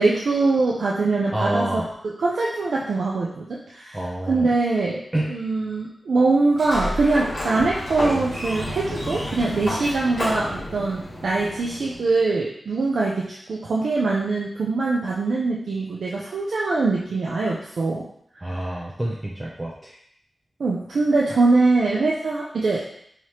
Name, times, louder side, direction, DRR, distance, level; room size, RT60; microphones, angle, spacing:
voice 1, 0.0-4.0 4.3-18.1 20.6-22.8, right 3 dB, 85° right, -4 dB, 0.5 m, -23 dB
voice 2, 1.3-1.9 3.9-4.5 5.1-5.4 18.4-20.0, right 1 dB, 20° right, -3 dB, 0.5 m, -27 dB
Sliding door, 6.5-12.2, left 1 dB, 45° left, 1.3 m, -31 dB
4.8 x 2.9 x 2.9 m, 0.69 s
wide cardioid pair, 105°, 0 cm